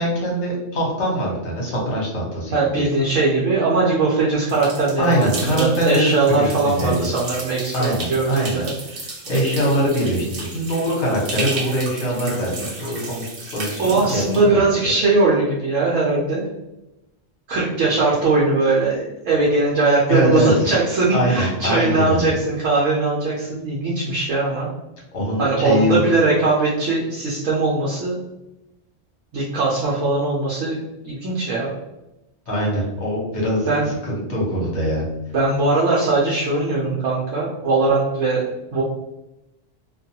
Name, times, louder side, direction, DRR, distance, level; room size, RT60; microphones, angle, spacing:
voice 1, 0.0-2.9 5.0-7.1 7.7-8.7 9.0-13.2 13.5-14.9 20.1-20.5 21.1-22.3 25.1-26.0 32.5-35.0, equal, 65° left, -3 dB, 1.2 m, -23 dB
voice 2, 2.5-8.5 13.8-16.5 17.5-24.7 25.4-28.2 29.3-30.8 31.0-31.7 33.7-33.9 35.3-38.8, right 3 dB, 80° right, -5 dB, 1.0 m, -20 dB
sound 1, 4.5-14.4, right 2 dB, 50° right, 0.9 m, -34 dB
2.5 x 2.3 x 2.7 m, 0.93 s
omnidirectional pair, 1.3 m